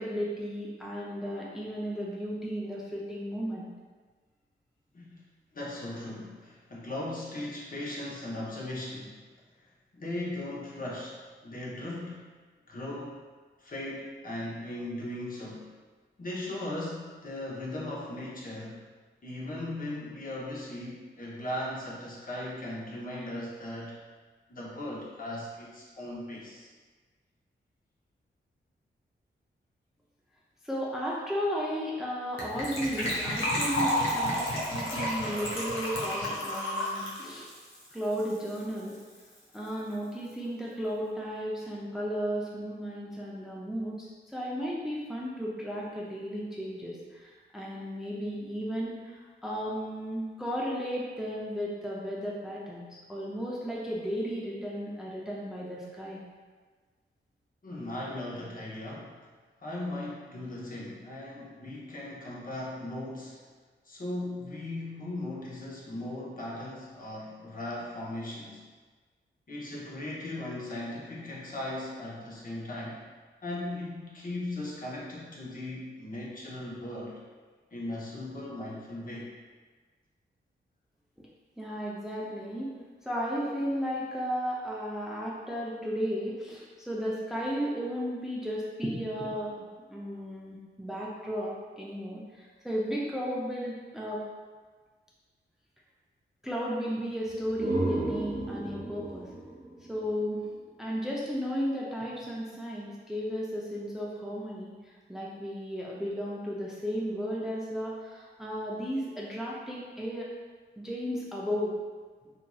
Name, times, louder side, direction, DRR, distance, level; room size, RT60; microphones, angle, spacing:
voice 1, 0.0-3.7 30.6-37.5 37.9-39.0 39.5-56.2 81.6-82.7 83.0-94.2 96.4-99.3 99.9-100.4 100.8-110.3 110.8-111.7, equal, ahead, -5 dB, 0.5 m, -34 dB
voice 2, 5.5-9.2 9.6-12.3 12.7-13.2 13.6-15.7 16.2-18.9 19.2-24.0 24.5-26.7 57.6-59.2 59.6-63.4 63.8-68.6 69.5-73.0 73.4-77.2 77.7-79.3, left 1 dB, 45° left, -5 dB, 0.8 m, -38 dB
Gurgling / Trickle dribble / Fill (with liquid), 32.4-38.6 38.9-39.0 39.1-39.4 39.7-39.8, equal, 85° left, 0.7 m, -31 dB
sound 1, 97.3-100.9, right 2 dB, 35° right, 0.9 m, -34 dB
3.0 x 2.5 x 2.3 m, 1.4 s
cardioid pair, 60°, 20 cm